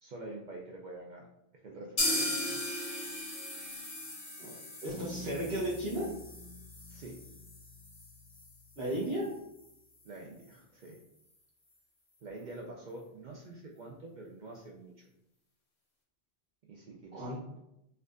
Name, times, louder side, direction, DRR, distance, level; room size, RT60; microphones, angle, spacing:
voice 1, 0.0-1.3 1.6-2.6 6.9-7.2 10.0-11.0 12.2-14.9 16.7-17.6, right 2 dB, 55° right, -1 dB, 0.5 m, -46 dB
sound 1, 2.0-9.7 10.0-10.1 10.4-10.5 10.9-11.0, left 1 dB, 40° left, 0.8 m, -38 dB
voice 2, 4.8-6.1 8.8-9.3 17.1-17.4, right 1 dB, 80° right, -8 dB, 1.2 m, -34 dB
sound 2, 4.9-9.4, left 2 dB, 65° left, 1.4 m, -49 dB
4.4 x 2.4 x 2.4 m, 0.84 s
omnidirectional pair, 1.1 m